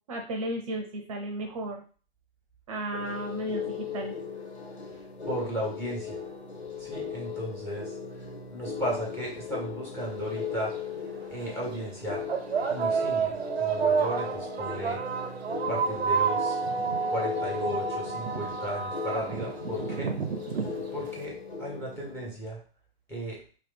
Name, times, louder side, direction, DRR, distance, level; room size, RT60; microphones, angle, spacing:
voice 1, 0.1-1.8 2.7-4.2, right 1 dB, 35° right, 3 dB, 0.6 m, -34 dB
sound 1, 2.9-22.4, left 6 dB, 85° left, 0.8 m, -38 dB
voice 2, 4.9-6.2 6.8-8.0 8.5-10.8 11.3-12.3 12.7-15.2 15.7-16.6 17.1-20.1 20.7-22.6 23.1-23.4, right 1 dB, 10° left, -3 dB, 0.7 m, -35 dB
sound 2, 10.2-10.3 11.2-11.4 12.3-21.2, right 5 dB, 75° right, 0.6 m, -29 dB
3.0 x 2.7 x 3.3 m, 0.39 s
figure-of-eight pair, 120°, 32 cm